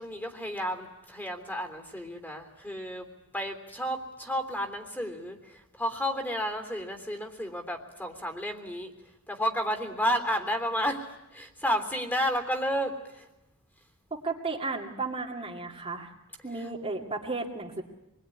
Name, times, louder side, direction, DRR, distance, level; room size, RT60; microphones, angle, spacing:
voice 1, 0.0-3.1 3.3-8.9 9.3-11.1 11.3-13.3, equal, 10° left, 5 dB, 3.3 m, -31 dB
voice 2, 14.1-16.1 16.4-17.8, right 3 dB, 30° right, -1 dB, 2.4 m, -34 dB
27.0 x 22.0 x 9.9 m, 0.98 s
head